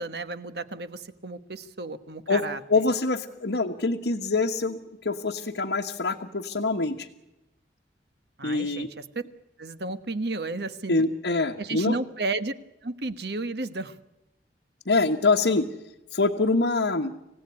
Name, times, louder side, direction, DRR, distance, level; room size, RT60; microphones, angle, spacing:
voice 1, 0.0-2.8 8.4-9.0 9.6-11.1 11.6-12.5 12.8-13.9, right 3 dB, 65° right, 11 dB, 1.3 m, -33 dB
voice 2, 2.7-7.1 8.4-8.9 10.9-11.9 14.9-15.7 16.1-17.1, left 3 dB, 80° left, 0 dB, 1.3 m, -25 dB
26.5 x 16.5 x 9.7 m, 0.94 s
head